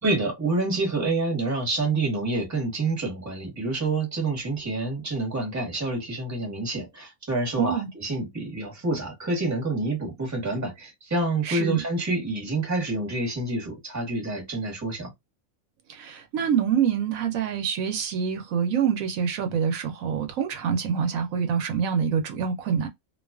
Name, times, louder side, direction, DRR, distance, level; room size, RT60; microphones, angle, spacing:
voice 1, 0.0-15.1, right 2 dB, 15° right, 0.9 m, -27 dB
voice 2, 7.6-7.9 11.4-11.8 15.9-22.9, right 7 dB, 75° right, 1.0 m, -26 dB
2.5 x 2.3 x 2.3 m
omnidirectional pair, 1.5 m